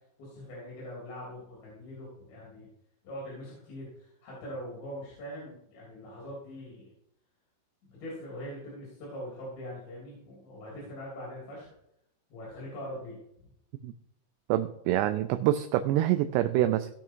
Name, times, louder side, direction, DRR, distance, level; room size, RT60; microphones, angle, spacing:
voice 1, 0.2-2.7 3.0-6.9 7.8-11.7 12.3-13.2, equal, 70° left, -5 dB, 5.1 m, -42 dB
voice 2, 14.5-16.9, right 13 dB, 85° right, 9 dB, 2.4 m, -26 dB
17.5 x 5.9 x 4.5 m, 0.77 s
omnidirectional pair, 5.3 m